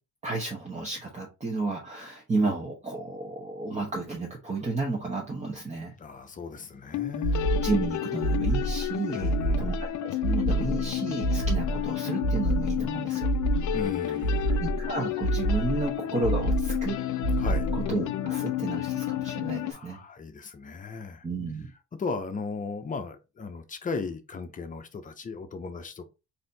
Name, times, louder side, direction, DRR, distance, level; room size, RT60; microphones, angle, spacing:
voice 1, 0.2-5.9 7.6-9.2 9.6-13.3 14.6-17.0 17.7-20.0 21.2-21.7, right 3 dB, 25° right, 1.0 m, -32 dB
voice 2, 6.0-7.5 9.1-9.9 13.7-14.6 17.4-17.7 19.7-21.2 22.0-26.1, left 4 dB, 25° left, 0.7 m, -36 dB
sound 1, 6.4-6.5 6.9-19.7, left 13 dB, 75° left, 0.6 m, -31 dB
sound 2, 7.2-7.9 8.2-8.9 9.2-9.8 10.2-10.9 11.2-11.8 12.2-12.9 13.2-13.8 14.2-14.9 15.2-15.9 16.2-16.9 17.2-17.9, right 2 dB, 75° right, 1.5 m, -27 dB
4.0 x 2.8 x 4.0 m
cardioid pair, 150°, 30 cm